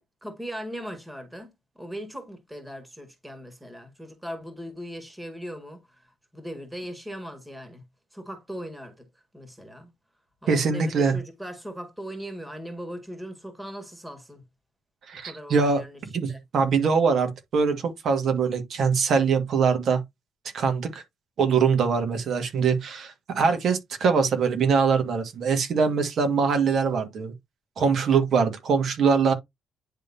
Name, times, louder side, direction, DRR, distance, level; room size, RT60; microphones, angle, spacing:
voice 1, 0.0-6.1 6.3-7.8 8.1-9.1 9.3-9.9 10.4-14.4 15.2-16.0 16.3-16.4, equal, 10° right, 2.1 m, -39 dB
voice 2, 10.5-11.2 15.1-15.8 16.1-20.0 20.5-21.0 21.4-27.3 27.8-29.3, right 5 dB, 60° right, 1.9 m, -23 dB
10.5 x 3.6 x 2.7 m
cardioid pair, 90°, 0 cm